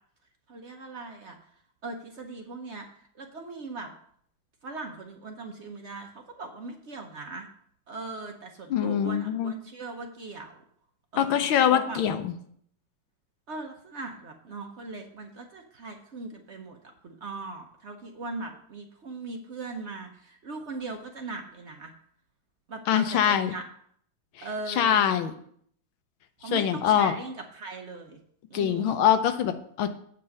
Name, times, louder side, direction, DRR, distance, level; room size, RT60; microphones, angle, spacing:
voice 1, 0.5-1.5 1.8-3.9 4.6-7.5 7.9-10.6 11.1-12.0 13.5-21.9 22.7-23.6 24.4-25.2 26.4-28.2 28.5-29.0, right 3 dB, 50° right, 3 dB, 0.9 m, -39 dB
voice 2, 8.7-9.5 11.2-12.3 22.9-23.5 24.4-24.5 24.8-25.3 26.5-27.1 28.5-29.9, left 9 dB, 90° left, 9 dB, 1.6 m, -23 dB
8.1 x 5.3 x 6.5 m, 0.64 s
omnidirectional pair, 2.1 m